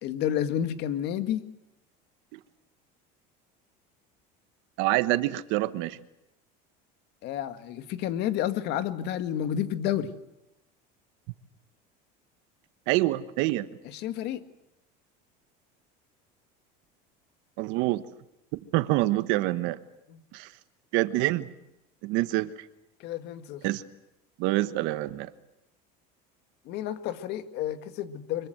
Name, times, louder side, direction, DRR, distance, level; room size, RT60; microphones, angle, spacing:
voice 1, 0.0-1.4 7.2-10.1 13.9-14.4 20.1-20.2 23.0-23.6 26.7-28.5, left 10 dB, 55° left, 10 dB, 2.0 m, -30 dB
voice 2, 4.8-6.0 12.9-13.7 17.6-18.0 18.7-19.8 20.3-20.5 20.9-21.5 22.0-22.5 23.6-23.8 24.4-25.3, right 17 dB, 65° right, 13 dB, 1.4 m, -26 dB
25.0 x 23.0 x 8.0 m, 0.88 s
cardioid pair, 145°, 20 cm